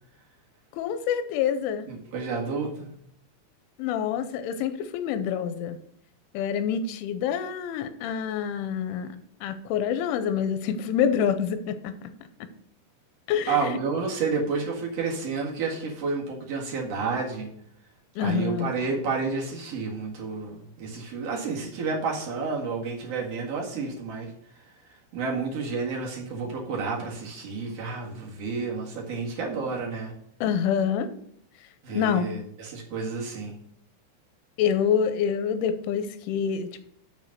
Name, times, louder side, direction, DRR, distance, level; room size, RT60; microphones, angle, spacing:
voice 1, 0.7-1.9 3.8-5.8 6.3-9.2 9.4-12.0 13.3-13.8 18.2-18.7 30.4-31.1 31.9-32.3 34.6-36.8, left 8 dB, 85° left, 10 dB, 3.1 m, -26 dB
voice 2, 1.9-2.9 13.5-17.5 18.2-24.3 25.1-30.1 31.8-33.5, right 4 dB, 55° right, -2 dB, 1.8 m, -30 dB
6.7 x 6.3 x 6.5 m, 0.70 s
omnidirectional pair, 5.6 m